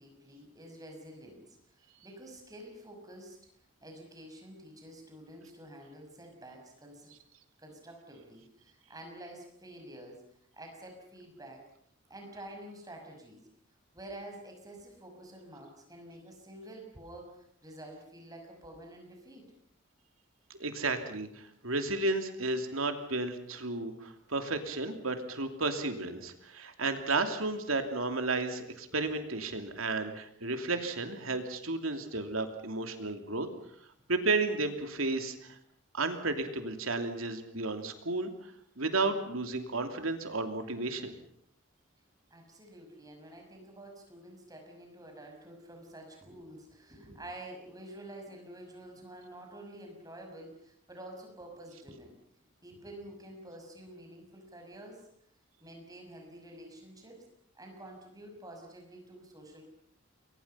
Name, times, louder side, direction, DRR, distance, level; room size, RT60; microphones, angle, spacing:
voice 1, 0.0-3.4 3.8-7.1 7.6-10.2 10.5-11.7 12.1-13.4 13.9-19.4 21.8-21.9 42.3-52.1 52.6-55.0 55.6-57.2 57.5-59.7, right 1 dB, 20° right, 2 dB, 6.1 m, -49 dB
voice 2, 20.6-33.5 34.1-35.5 35.9-38.3 38.8-41.1, right 3 dB, 85° right, 6 dB, 3.0 m, -33 dB
29.0 x 22.5 x 5.7 m, 0.66 s
head